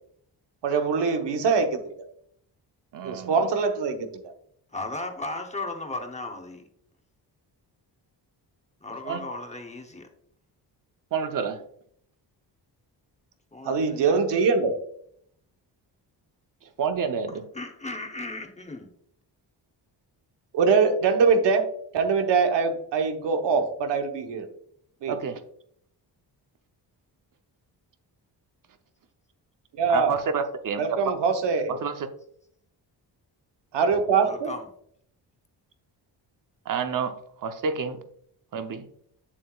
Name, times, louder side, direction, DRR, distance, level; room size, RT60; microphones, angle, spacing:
voice 1, 0.6-1.8 3.0-4.2 13.6-14.7 20.5-21.7 21.9-24.5 25.0-25.1 29.8-30.1 30.8-31.7 33.7-34.5, right 5 dB, 80° right, 5 dB, 1.1 m, -23 dB
voice 2, 2.9-3.4 9.1-9.2 11.1-11.6 16.6-17.4 25.1-25.4 29.9-31.0 31.7-32.1 36.7-38.0 38.5-38.9, right 6 dB, 50° right, 7 dB, 0.8 m, -29 dB
voice 3, 4.7-6.7 8.8-10.1 13.5-14.2 17.3-18.9 34.2-34.7, left 2 dB, 15° left, 4 dB, 0.7 m, -36 dB
8.6 x 7.2 x 2.3 m, 0.68 s
wide cardioid pair, 170°, 41 cm